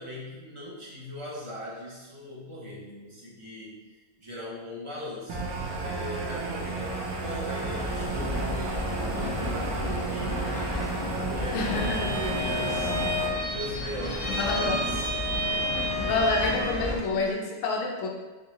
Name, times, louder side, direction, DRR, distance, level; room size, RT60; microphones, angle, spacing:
voice 1, 0.0-3.8 4.2-5.4 5.8-10.6 11.1-15.1, equal, 30° right, -6 dB, 0.6 m, -39 dB
sound 1, 5.3-13.3, right 3 dB, 85° right, 1.2 m, -33 dB
sound 2, 7.6-17.0, left 1 dB, 35° left, 0.4 m, -34 dB
voice 2, 11.5-12.0 14.4-15.0 15.8-18.1, left 3 dB, 65° left, 0 dB, 1.0 m, -28 dB
Bowed string instrument, 11.6-16.8, left 1 dB, 15° left, 0.9 m, -31 dB
3.6 x 3.2 x 2.9 m, 1.2 s
omnidirectional pair, 1.5 m